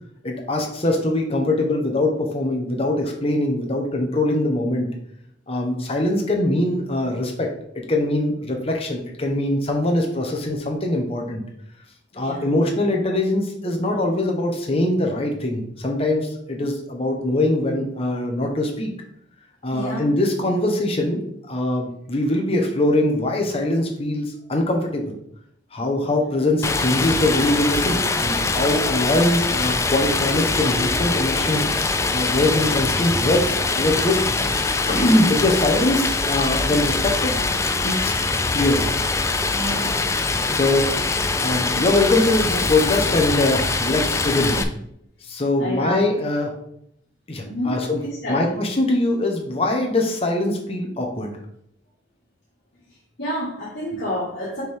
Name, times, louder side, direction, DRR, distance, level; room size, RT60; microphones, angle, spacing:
voice 1, 0.2-4.9 5.5-7.5 7.9-11.4 12.1-18.9 19.6-21.2 21.5-25.2 25.7-31.6 32.1-34.2 34.9-37.4 37.8-38.1 38.5-38.9 40.5-40.9 41.4-44.5 45.3-46.5 47.3-48.0 48.3-51.4, left 1 dB, 30° left, 1 dB, 1.0 m, -22 dB
voice 2, 12.1-12.5 19.7-20.0 26.0-26.1 35.1-35.4 39.5-40.1 41.7-41.8 42.1-42.2 44.5-44.7 45.6-46.1 47.4-48.5 53.2-54.6, equal, 60° left, -9 dB, 1.9 m, -30 dB
Stream, 26.6-44.6, left 3 dB, 15° left, 0.3 m, -23 dB
6.0 x 4.6 x 3.5 m, 0.72 s
head